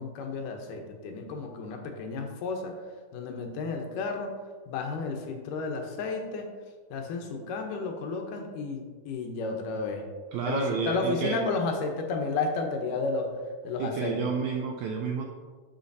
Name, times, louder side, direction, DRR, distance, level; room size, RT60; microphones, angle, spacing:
voice 1, 0.0-2.8 3.1-4.4 4.7-6.5 6.9-10.0 10.5-14.2, left 3 dB, 80° left, 3 dB, 2.3 m, -32 dB
voice 2, 10.3-11.4 13.8-15.3, right 5 dB, 85° right, 2 dB, 1.7 m, -30 dB
12.5 x 4.9 x 2.6 m, 1.5 s
omnidirectional pair, 3.9 m